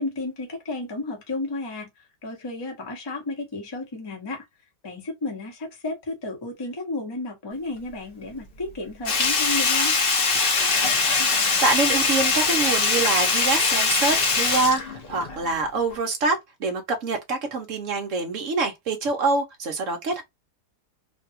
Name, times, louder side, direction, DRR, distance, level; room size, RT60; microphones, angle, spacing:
voice 1, 0.0-4.5 4.8-9.9, left 2 dB, 20° left, 0.6 m, -32 dB
Sink (filling or washing), 9.0-15.6 15.9-16.0, left 4 dB, 65° left, 0.5 m, -22 dB
voice 2, 11.3-20.2, right 3 dB, 60° right, 0.8 m, -25 dB
3.3 x 2.3 x 2.7 m
omnidirectional pair, 2.2 m